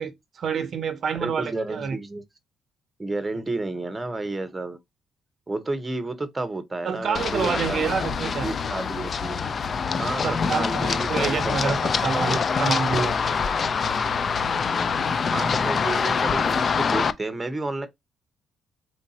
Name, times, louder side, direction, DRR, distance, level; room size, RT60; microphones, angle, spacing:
voice 1, 0.0-2.0 6.8-8.5 10.2-13.1, right 6 dB, 60° right, 0.5 m, -27 dB
voice 2, 1.2-2.2 3.0-4.8 5.5-8.1 8.4-9.4 10.0-10.2 10.5-12.1 15.3-17.9, right 2 dB, 20° right, 0.7 m, -31 dB
Run, 7.1-17.1, left 5 dB, 45° left, 0.4 m, -25 dB
3.2 x 2.6 x 4.0 m
cardioid pair, 90°, 0 cm